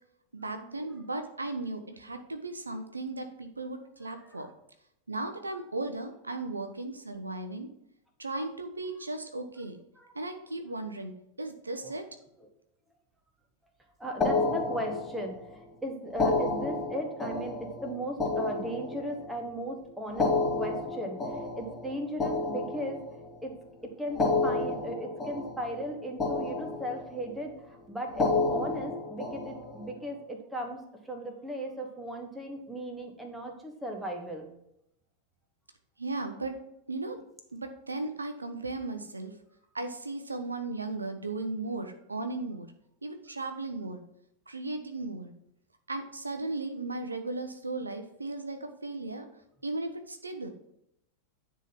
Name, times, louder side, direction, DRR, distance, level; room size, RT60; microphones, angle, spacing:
voice 1, 0.3-4.5 5.1-7.7 8.2-9.8 10.1-11.1 11.4-12.0 36.0-36.6 36.9-37.2 37.5-39.3 39.7-42.7 43.0-44.0 44.5-45.3 45.9-49.2 49.6-50.5, right 2 dB, 80° right, 7 dB, 0.8 m, -36 dB
voice 2, 14.0-23.0 23.4-23.6 23.8-34.5, right 1 dB, 5° right, 3 dB, 1.5 m, -37 dB
sound 1, 14.2-15.4 16.1-19.4 20.1-23.4 24.1-25.9 26.2-27.3 28.1-29.9, left 3 dB, 15° left, 2.9 m, -31 dB
9.9 x 3.8 x 5.8 m, 0.78 s
figure-of-eight pair, 90°, 0 cm